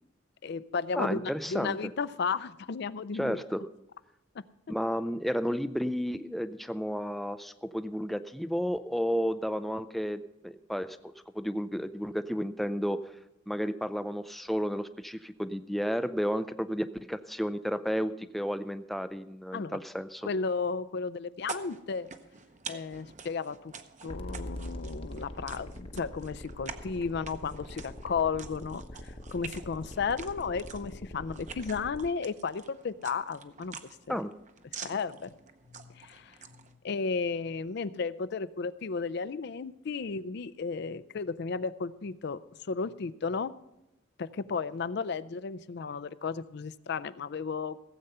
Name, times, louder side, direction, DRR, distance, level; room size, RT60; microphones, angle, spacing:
voice 1, 0.4-3.4 4.3-4.4 19.5-19.8 20.2-22.1 22.7-23.7 24.0-33.8 34.1-34.2 34.8-35.3 35.7-36.4 36.8-43.6 44.2-47.8, left 5 dB, 60° left, 16 dB, 0.5 m, -34 dB
voice 2, 1.0-1.8 3.1-3.6 4.7-13.1 13.5-20.3 34.1-34.3, equal, ahead, 10 dB, 0.4 m, -32 dB
sound 1, 21.4-36.7, right 5 dB, 40° right, 0.8 m, -47 dB
sound 2, 24.1-32.1, equal, 30° left, 0.8 m, -43 dB
16.5 x 7.9 x 5.5 m, 0.88 s
head